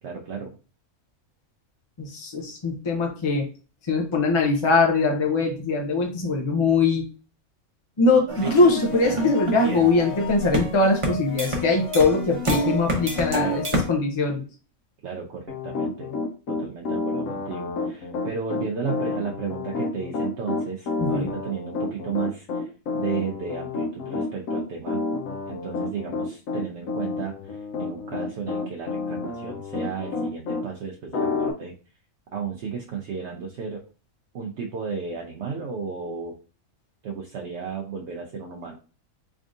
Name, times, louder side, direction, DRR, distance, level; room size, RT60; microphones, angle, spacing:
voice 1, 0.0-0.5 13.3-13.6 15.0-16.1 16.5-25.0 25.5-31.7 32.3-33.8 34.3-36.4 37.0-38.8, right 6 dB, 65° right, 0 dB, 0.8 m, -33 dB
voice 2, 2.0-3.5 3.9-7.0 8.0-14.4 21.0-21.3, left 3 dB, 40° left, 1 dB, 0.4 m, -22 dB
sound 1, 8.3-13.9, equal, 30° right, 0.8 m, -28 dB
Piano, 15.5-30.7 31.1-31.5, left 3 dB, 75° left, 1.1 m, -29 dB
3.6 x 3.5 x 2.5 m, 0.35 s
omnidirectional pair, 1.4 m